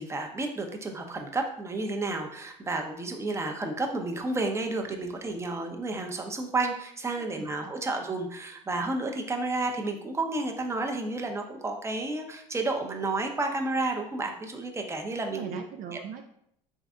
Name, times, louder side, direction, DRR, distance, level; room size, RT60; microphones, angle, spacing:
voice 1, 0.0-15.6 15.9-16.0, right 2 dB, 15° right, 3 dB, 0.7 m, -31 dB
voice 2, 7.2-7.7 15.3-16.3, right 8 dB, 55° right, 4 dB, 0.4 m, -40 dB
3.7 x 3.2 x 3.6 m, 0.72 s
supercardioid pair, 85°, 17 cm